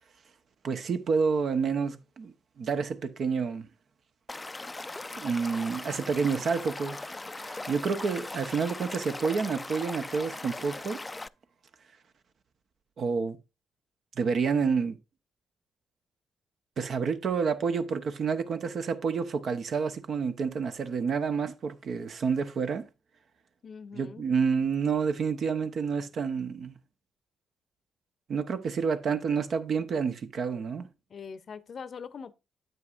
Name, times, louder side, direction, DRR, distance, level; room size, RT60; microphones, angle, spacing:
voice 1, 0.6-3.7 5.2-7.1 7.4-11.0 13.0-13.4 14.2-15.0 16.8-22.9 23.9-26.7 28.3-30.9, right 5 dB, 60° right, 0.9 m, -29 dB
Stream / Liquid, 4.3-11.3, left 2 dB, 20° left, 0.4 m, -39 dB
voice 2, 23.6-24.3 31.1-32.3, left 6 dB, 55° left, 0.7 m, -42 dB
9.4 x 7.7 x 2.5 m
hypercardioid pair, 45°, 0 cm